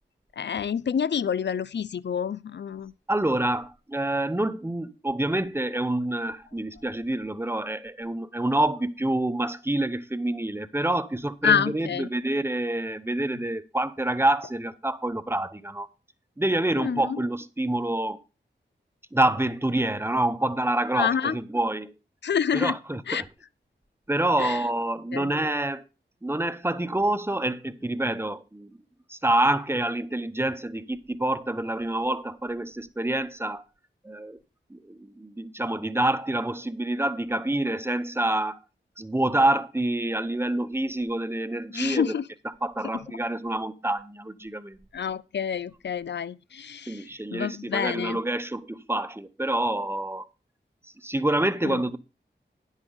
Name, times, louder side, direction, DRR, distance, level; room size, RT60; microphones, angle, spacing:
voice 1, 0.4-2.9 11.4-12.1 16.8-17.2 20.9-21.4 22.2-22.7 23.1-23.2 24.4-24.6 25.1-25.3 41.7-42.2 44.9-47.0 47.3-48.2 51.6-51.8, left 7 dB, 65° left, 0.5 m, -27 dB
voice 2, 3.1-15.9 16.4-18.2 19.1-21.9 22.5-23.3 24.1-25.8 26.2-28.8 29.1-33.6 34.0-34.4 34.7-38.6 39.0-42.2 42.6-44.8 46.9-50.3 50.8-52.0, right 1 dB, 10° right, 0.8 m, -27 dB
9.9 x 8.2 x 3.9 m
cardioid pair, 45°, 20 cm